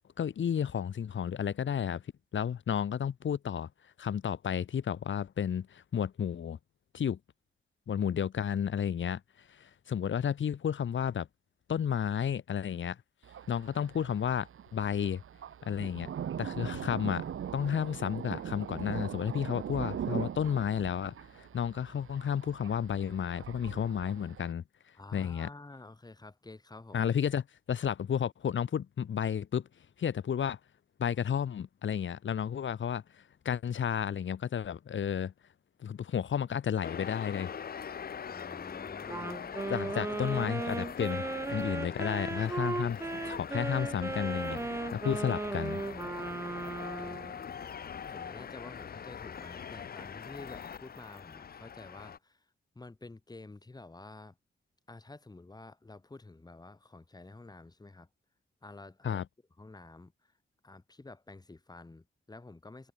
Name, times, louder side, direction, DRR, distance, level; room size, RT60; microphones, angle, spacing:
voice 1, 0.0-2.0 2.3-3.7 4.0-6.6 6.9-7.2 7.9-9.2 9.5-11.3 11.7-13.0 13.5-15.2 15.6-16.1 16.4-24.6 25.1-25.5 26.9-29.7 30.0-30.6 31.0-33.0 33.4-35.3 35.8-37.5 39.7-45.8 59.0-59.2, left 8 dB, 65° left, 1.3 m, -32 dB
Thunder, 13.2-24.5, right 9 dB, 90° right, 1.1 m, -41 dB
voice 2, 25.0-27.0 38.3-39.4 39.8-40.2 46.9-47.5 48.1-52.4 52.8-54.4 54.9-58.1 58.6-59.2 59.6-60.1 60.6-62.9, left 2 dB, 20° left, 3.5 m, -50 dB
sound 1, 36.8-52.2, left 7 dB, 45° left, 0.7 m, -42 dB
Wind instrument woodwind instrument, 39.1-47.4, right 3 dB, 15° right, 0.3 m, -36 dB
wide cardioid pair, 180°, 21 cm